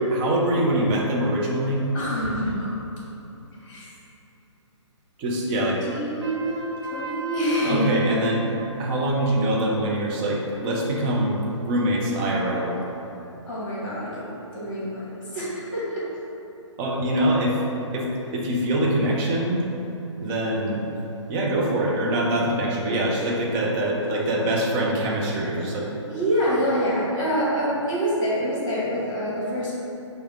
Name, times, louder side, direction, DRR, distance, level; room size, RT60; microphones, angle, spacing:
voice 1, 0.1-1.8 5.2-5.8 7.6-8.5 8.8-12.7 16.8-17.6 17.9-19.7 20.2-20.8 21.3-25.9, right 1 dB, 15° right, -3 dB, 0.3 m, -24 dB
voice 2, 1.9-2.7 3.6-3.9 5.6-8.1 13.5-14.2 14.5-16.0 26.1-29.7, equal, 40° left, -7 dB, 1.5 m, -26 dB
Trumpet, 6.2-8.5, right 5 dB, 60° right, 0.6 m, -36 dB
4.6 x 2.1 x 3.5 m, 3.0 s
figure-of-eight pair, 140°, 16 cm